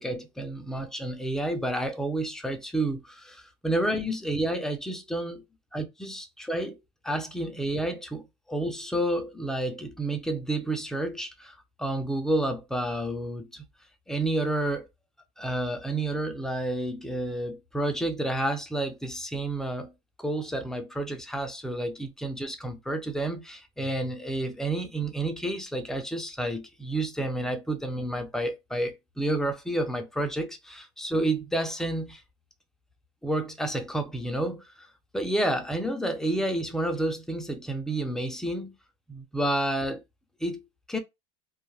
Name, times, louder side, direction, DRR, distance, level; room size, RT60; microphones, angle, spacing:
voice 1, 0.0-5.4 5.7-6.8 7.0-13.7 14.1-14.9 15.4-19.9 20.2-32.2 33.2-34.9 35.1-38.7 39.1-40.0 40.4-40.6 40.9-41.0, right 1 dB, 5° left, 0.5 m, -30 dB
2.2 x 2.2 x 3.1 m
supercardioid pair, 110°, 16 cm